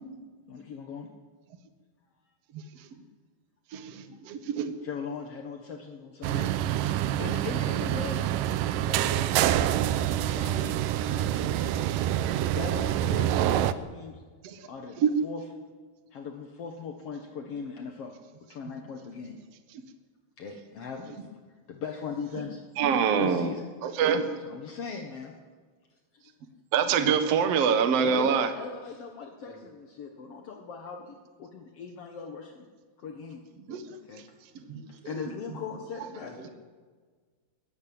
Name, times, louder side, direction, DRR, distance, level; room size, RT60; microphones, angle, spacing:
voice 1, 0.5-1.1 4.8-6.5 7.2-8.5 8.9-9.9 10.3-11.8 12.5-14.2 14.7-15.4 16.1-18.2 18.5-19.4 20.4-22.6 23.2-23.7 24.5-25.4 26.1-26.3 28.0-32.7 33.0-33.4 34.1-34.3 34.9-36.5, left 5 dB, 55° left, 3 dB, 1.7 m, -40 dB
voice 2, 4.3-4.8 11.8-12.2 14.4-14.7 15.0-15.1 22.8-23.5 23.8-24.3 26.7-28.5 33.7-34.0 34.7-35.2, right 7 dB, 55° right, 8 dB, 2.0 m, -25 dB
sound 1, 6.2-13.7, right 11 dB, 80° right, 2.0 m, -26 dB
voice 3, 36.2-36.5, left 3 dB, 25° left, 0 dB, 4.1 m, -45 dB
21.5 x 17.0 x 8.8 m, 1.5 s
omnidirectional pair, 4.6 m